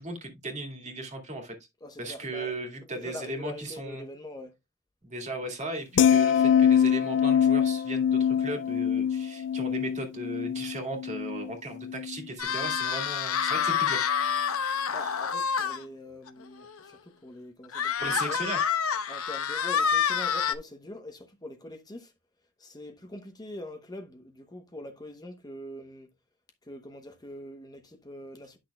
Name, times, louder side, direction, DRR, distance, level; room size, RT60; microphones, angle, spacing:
voice 1, 0.0-1.5 2.0-4.0 5.0-15.1 18.0-18.7, right 2 dB, 35° right, 2.2 m, -37 dB
voice 2, 1.8-2.5 2.9-4.6 14.6-18.4 19.1-22.1 22.6-26.1 26.6-28.6, left 1 dB, 20° left, 0.9 m, -43 dB
sound 1, 6.0-12.3 12.6-12.9, left 8 dB, 55° left, 0.3 m, -24 dB
sound 2, 12.4-15.8 16.3-16.4 16.7-16.8 17.7-20.5, left 7 dB, 85° left, 0.9 m, -27 dB
10.5 x 6.3 x 2.3 m
head